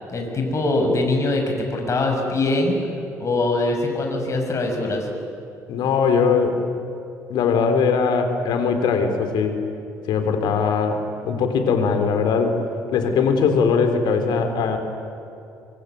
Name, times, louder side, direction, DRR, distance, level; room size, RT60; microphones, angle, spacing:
voice 1, 0.1-2.8 3.2-5.1, left 2 dB, 40° left, 2 dB, 6.7 m, -22 dB
voice 2, 5.7-6.6 7.3-9.5 10.1-12.6 12.9-14.8, left 5 dB, 60° left, 7 dB, 4.1 m, -20 dB
24.5 x 24.5 x 9.6 m, 2.7 s
hypercardioid pair, 55°, 8 cm